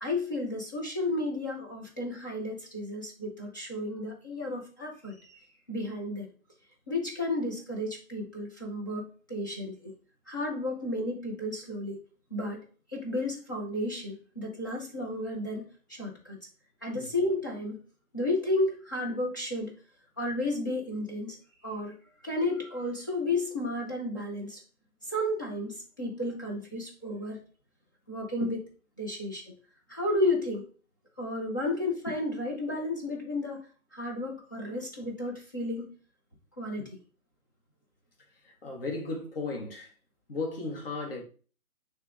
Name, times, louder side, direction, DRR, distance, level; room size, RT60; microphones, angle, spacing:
voice 1, 0.0-6.3 6.9-9.9 10.3-12.0 12.3-12.6 12.9-15.6 15.9-16.4 16.8-17.8 18.1-19.7 20.2-21.4 21.6-21.9 22.2-24.6 25.0-27.4 28.1-28.6 29.0-29.5 29.9-30.7 31.2-33.6 33.9-35.9 36.6-37.0, left 1 dB, 15° left, 0.7 m, -32 dB
voice 2, 38.4-39.9 40.3-41.2, left 3 dB, 40° left, 2.0 m, -35 dB
9.0 x 3.4 x 3.7 m
hypercardioid pair, 165°, 43 cm